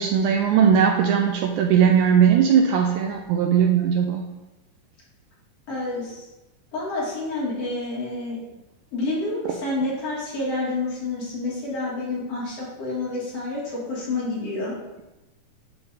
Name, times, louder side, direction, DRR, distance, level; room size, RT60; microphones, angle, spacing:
voice 1, 0.0-4.2, right 7 dB, 80° right, 2 dB, 1.8 m, -19 dB
voice 2, 5.7-6.3 6.7-8.4 8.9-14.8, left 2 dB, 50° left, -6 dB, 2.5 m, -28 dB
9.0 x 3.3 x 4.0 m, 1.0 s
omnidirectional pair, 3.8 m